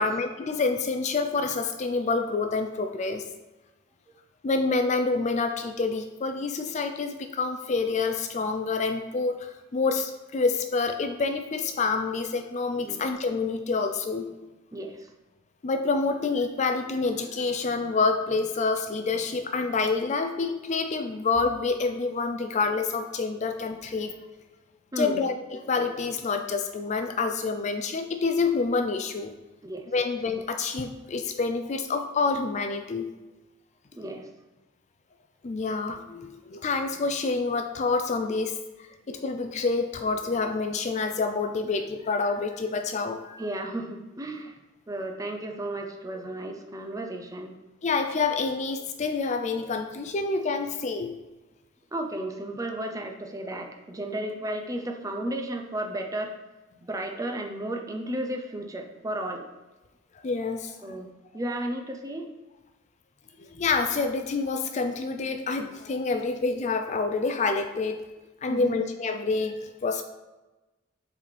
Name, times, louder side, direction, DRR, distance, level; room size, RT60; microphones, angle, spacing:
voice 1, 0.0-3.2 4.4-14.3 15.6-24.1 25.0-29.3 29.9-33.1 35.4-38.6 39.1-43.4 47.8-51.1 60.2-60.8 63.4-68.0 68.4-70.0, left 4 dB, 35° left, 7 dB, 0.4 m, -27 dB
voice 2, 14.7-15.1 24.9-25.2 29.6-29.8 33.9-34.3 43.4-44.5 44.9-47.5 51.9-56.3 56.8-59.5 60.8-62.3 68.5-68.8, right 1 dB, 15° right, 4 dB, 0.6 m, -33 dB
7.4 x 4.0 x 3.3 m, 1.1 s
head